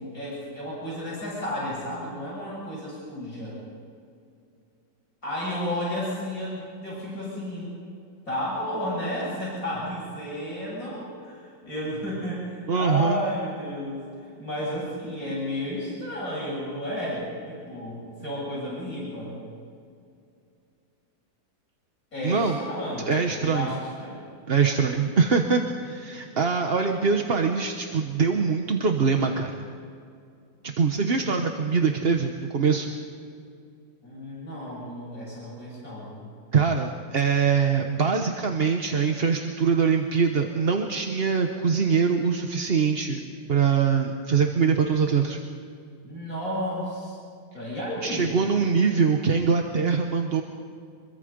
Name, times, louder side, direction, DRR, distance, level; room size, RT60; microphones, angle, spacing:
voice 1, 0.0-3.6 5.2-7.7 8.3-19.4 22.1-24.2 26.1-26.3 34.0-36.2 46.0-47.2 47.5-48.3, left 1 dB, 45° left, -6 dB, 8.2 m, -32 dB
voice 2, 12.7-13.2 22.2-22.6 23.1-23.7 24.5-29.6 30.8-32.9 36.5-43.2 43.5-45.4 48.0-50.4, right 5 dB, 40° right, 4 dB, 1.1 m, -23 dB
25.0 x 22.5 x 5.3 m, 2.4 s
omnidirectional pair, 2.1 m